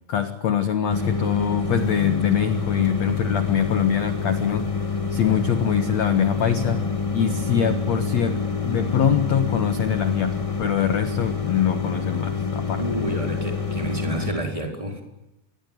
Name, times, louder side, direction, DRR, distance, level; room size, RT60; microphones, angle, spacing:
voice 1, 0.1-4.7 5.1-6.8 7.1-12.8, left 8 dB, 55° left, 9 dB, 2.0 m, -23 dB
sound 1, 0.9-14.3, left 5 dB, 40° left, 0.4 m, -27 dB
voice 2, 12.8-15.0, right 1 dB, 5° right, 3 dB, 4.8 m, -29 dB
27.5 x 23.0 x 9.4 m, 0.90 s
omnidirectional pair, 5.0 m